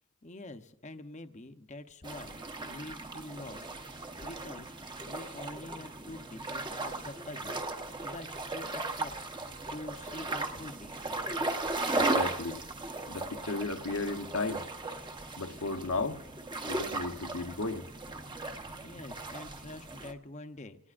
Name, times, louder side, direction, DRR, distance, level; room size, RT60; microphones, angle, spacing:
voice 1, 0.2-4.7 5.1-11.2 18.8-20.9, left 2 dB, 30° left, 0.8 m, -46 dB
sound 1, 2.0-20.1, right 2 dB, 20° right, 1.0 m, -37 dB
voice 2, 12.0-12.6 13.1-14.6 15.4-16.2 16.6-17.9, left 3 dB, 70° left, 1.0 m, -34 dB
27.0 x 18.5 x 2.5 m
head